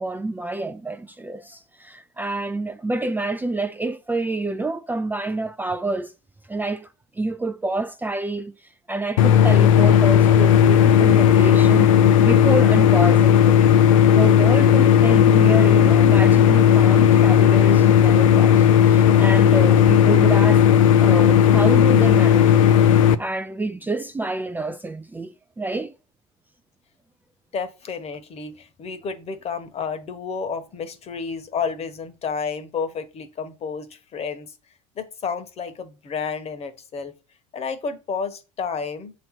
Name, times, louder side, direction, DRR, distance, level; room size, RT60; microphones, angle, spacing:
voice 1, 0.0-6.1 6.5-11.9 12.2-13.7 14.1-20.6 21.0-22.7 23.2-25.9, right 2 dB, 10° right, 0.4 m, -28 dB
sound 1, 9.2-23.2, left 9 dB, 85° left, 0.6 m, -14 dB
voice 2, 27.5-34.5 35.0-37.1 37.5-39.1, left 5 dB, 40° left, 1.2 m, -31 dB
7.5 x 3.1 x 5.8 m
hypercardioid pair, 85°, 17 cm